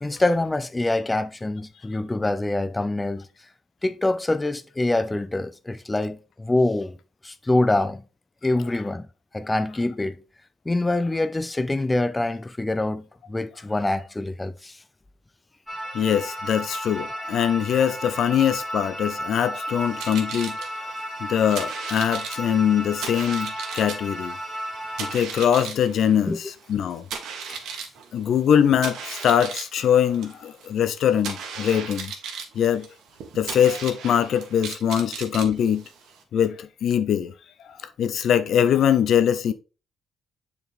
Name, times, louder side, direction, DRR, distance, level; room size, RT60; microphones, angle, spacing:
voice 1, 0.0-3.2 3.8-7.0 7.2-8.0 8.4-9.0 9.3-10.2 10.7-13.0 13.3-14.8 26.3-26.4 27.5-27.6, left 2 dB, 15° left, 0.4 m, -25 dB
sound 1, 15.7-25.2, equal, 5° right, 2.3 m, -33 dB
voice 2, 15.9-20.6 21.2-24.4 25.0-27.0 28.1-32.1 32.5-32.9 33.4-35.8 36.3-37.3 38.0-39.5, left 9 dB, 70° left, 0.6 m, -22 dB
sound 2, 19.8-36.2, right 6 dB, 80° right, 1.3 m, -37 dB
7.0 x 4.1 x 3.5 m
cardioid pair, 90°, 0 cm